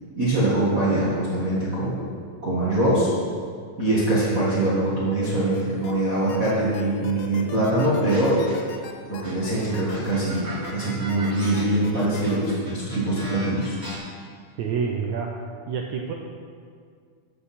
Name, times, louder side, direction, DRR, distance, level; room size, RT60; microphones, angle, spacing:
voice 1, 0.2-2.1 2.4-3.1 3.8-8.5 9.0-13.8, right 1 dB, 45° right, -8 dB, 1.1 m, -23 dB
sound 1, 5.2-5.9 6.3-10.7 11.1-12.5, left 7 dB, 80° left, 1.5 m, -41 dB
sound 2, 8.1-8.8 9.2-14.0, right 1 dB, 20° right, 2.3 m, -38 dB
voice 2, 14.6-15.3 15.7-16.1, right 6 dB, 80° right, 1 dB, 1.6 m, -27 dB
13.5 x 8.4 x 4.2 m, 2.1 s
omnidirectional pair, 4.1 m